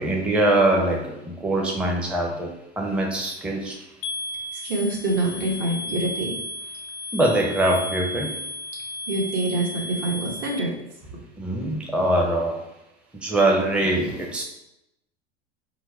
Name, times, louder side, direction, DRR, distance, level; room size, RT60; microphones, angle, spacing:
voice 1, 0.0-3.9 7.1-8.4 11.4-12.6 13.1-14.4, right 1 dB, 5° right, 0 dB, 0.6 m, -23 dB
sound 1, 4.0-10.6, left 1 dB, 40° left, 0.4 m, -34 dB
voice 2, 4.5-6.3 9.1-10.7 11.1-11.2, right 2 dB, 55° right, -1 dB, 1.3 m, -26 dB
4.6 x 2.0 x 4.1 m, 0.88 s
hypercardioid pair, 90°, 33 cm